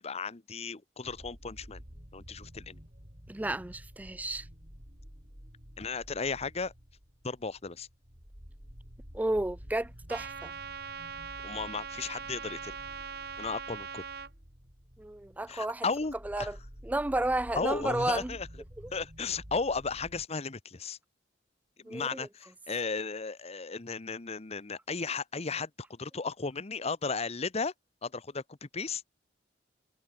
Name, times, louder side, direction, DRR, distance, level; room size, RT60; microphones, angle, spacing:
voice 1, 0.0-1.8 2.1-2.8 5.8-6.7 7.2-7.9 11.4-12.8 13.4-14.0 15.5-16.5 17.5-18.5 18.9-21.0 21.8-27.7 28.0-29.0, left 4 dB, 35° left, 0.9 m, -35 dB
sound 1, 1.0-20.3, equal, 45° right, 7.8 m, -51 dB
voice 2, 3.3-4.5 9.1-10.5 15.0-15.8 16.3-16.6 16.8-18.3 21.9-22.3, right 1 dB, 10° right, 0.4 m, -32 dB
Trumpet, 10.1-14.3, right 6 dB, 60° right, 2.2 m, -41 dB
head